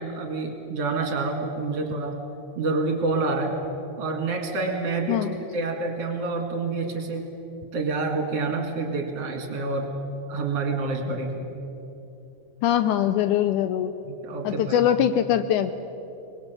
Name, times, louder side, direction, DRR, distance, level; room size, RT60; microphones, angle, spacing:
voice 1, 0.0-2.2 2.6-3.6 4.0-7.3 7.7-9.9 10.3-11.5 14.0-14.9, right 3 dB, 50° right, 3 dB, 2.9 m, -28 dB
voice 2, 5.1-5.4 12.6-13.9 14.4-15.7, left 10 dB, 80° left, 11 dB, 2.0 m, -22 dB
24.5 x 21.0 x 6.8 m, 2.9 s
omnidirectional pair, 3.9 m